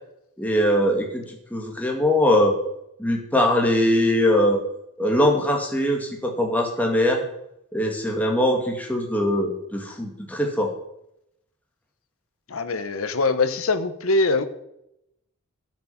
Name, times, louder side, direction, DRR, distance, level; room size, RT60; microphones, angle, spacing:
voice 1, 0.4-2.6 3.0-4.6 5.0-7.2 7.7-10.7, left 1 dB, 5° left, 1 dB, 2.3 m, -21 dB
voice 2, 12.5-14.4, left 3 dB, 75° left, 11 dB, 1.1 m, -23 dB
11.5 x 8.5 x 7.2 m, 0.81 s
head